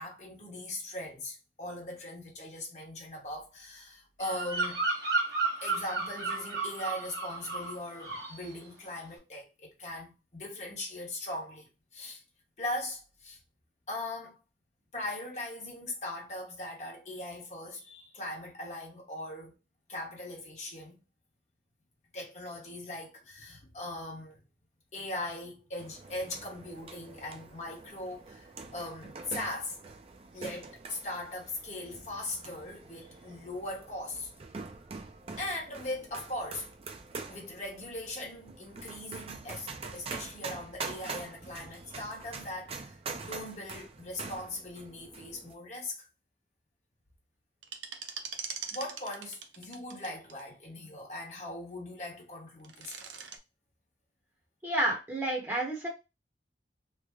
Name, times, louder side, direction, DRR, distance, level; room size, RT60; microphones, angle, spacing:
voice 1, 0.0-4.8 5.6-12.2 12.6-13.4 13.9-14.4 14.9-19.5 19.9-21.0 22.1-24.4 24.9-29.8 30.3-34.3 35.4-36.7 37.1-45.9 48.7-53.1, left 1 dB, 40° left, 1.0 m, -40 dB
Bird vocalization bird call bird song, 4.2-7.7 8.0-8.4, right 3 dB, 65° right, 1.3 m, -32 dB
sound 1, 25.8-45.5, right 4 dB, 35° right, 0.4 m, -45 dB
sound 2, 47.6-50.4 52.5-53.4, right 6 dB, 90° right, 0.6 m, -41 dB
voice 2, 54.6-55.9, right 1 dB, 10° right, 0.9 m, -30 dB
3.2 x 2.0 x 3.5 m
head